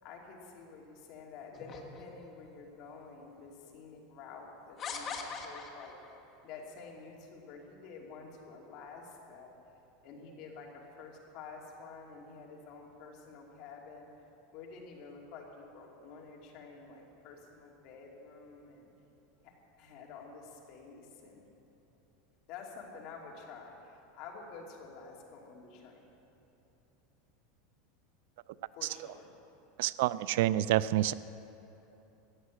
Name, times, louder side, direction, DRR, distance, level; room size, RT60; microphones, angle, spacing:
voice 1, 0.0-5.9 6.4-9.5 10.0-10.7 11.0-14.1 14.5-18.9 19.4-19.5 19.8-21.5 22.5-26.1 28.7-29.3, left 4 dB, 45° left, -1 dB, 2.7 m, -49 dB
sound 1, 1.5-2.5 3.3-3.4 4.8-6.1, left 5 dB, 30° left, 1.4 m, -41 dB
voice 2, 29.8-31.1, right 14 dB, 65° right, 17 dB, 0.4 m, -28 dB
14.5 x 9.8 x 8.4 m, 3.0 s
supercardioid pair, 155°, 0 cm